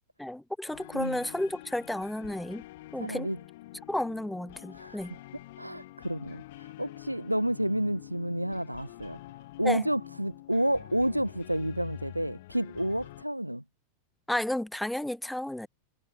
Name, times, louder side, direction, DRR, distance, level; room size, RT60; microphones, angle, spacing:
voice 1, 0.2-2.6 2.9-3.3 3.9-5.2 9.6-9.9 14.3-15.7, left 1 dB, 5° left, 0.6 m, -32 dB
sound 1, 0.7-13.2, left 18 dB, 50° left, 3.3 m, -47 dB
voice 2, 3.0-3.4 4.7-5.1 5.6-9.2 9.6-13.6, right 1 dB, 90° right, 0.6 m, -30 dB
figure-of-eight pair, 90°, 0 cm